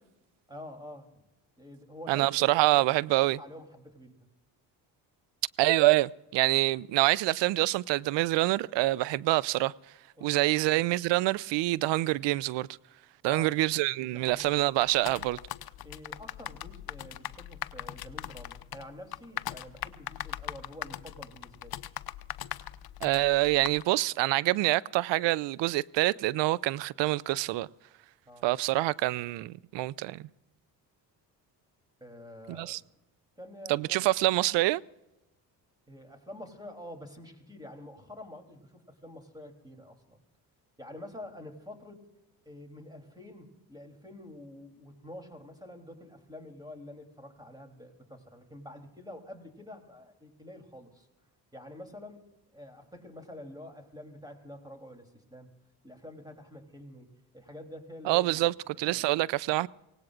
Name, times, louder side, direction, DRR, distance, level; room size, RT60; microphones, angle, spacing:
voice 1, 0.5-1.2 1.6-2.8 3.2-4.3 10.2-10.5 13.2-13.5 14.0-14.6 15.8-21.8 28.3-28.5 32.0-32.9 33.4-34.0 35.9-40.2 40.8-42.1 42.4-51.1 51.5-52.2 52.5-55.6 55.8-58.5 58.7-59.1, left 1 dB, 10° right, 3.2 m, -47 dB
voice 2, 2.1-3.4 5.6-9.7 10.2-12.7 13.2-15.4 23.0-27.7 28.4-30.2 32.5-32.8 33.7-34.8 58.1-59.7, right 18 dB, 70° right, 0.5 m, -26 dB
sound 1, 14.3-23.8, left 13 dB, 55° left, 0.7 m, -41 dB
24.0 x 18.0 x 2.5 m
supercardioid pair, 60°, 45 cm